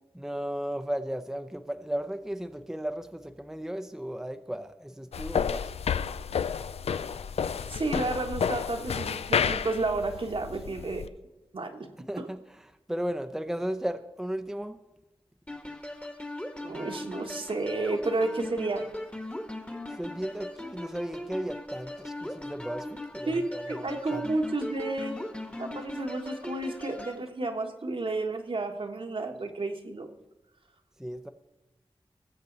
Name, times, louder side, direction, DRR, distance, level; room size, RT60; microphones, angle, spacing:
voice 1, 0.1-5.7 12.0-14.8 19.9-24.3 31.0-31.3, equal, 5° right, 8 dB, 0.7 m, -35 dB
sound 1, 5.1-11.1, left 7 dB, 85° left, 0.4 m, -30 dB
voice 2, 7.7-11.0 11.5-11.9 12.2-12.3 16.6-18.9 23.3-25.2 25.6-30.1, right 2 dB, 60° right, 4 dB, 1.4 m, -31 dB
sound 2, 15.5-27.2, left 1 dB, 10° left, 1.3 m, -39 dB
19.0 x 7.3 x 4.0 m, 1.0 s
wide cardioid pair, 60°, 10 cm